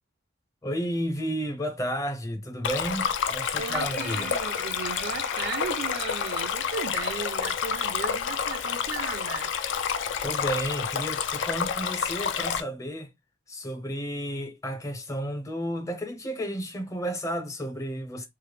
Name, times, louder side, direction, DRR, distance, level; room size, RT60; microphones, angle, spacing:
voice 1, 0.6-4.3 10.2-13.1 13.5-18.3, equal, 15° left, 0.6 m, -32 dB
Stream, 2.6-12.6, left 7 dB, 70° left, 0.4 m, -29 dB
voice 2, 3.6-9.5, right 5 dB, 60° right, 0.4 m, -36 dB
Alarm, 3.8-6.8, left 2 dB, 50° left, 1.2 m, -42 dB
3.2 x 2.0 x 3.2 m
head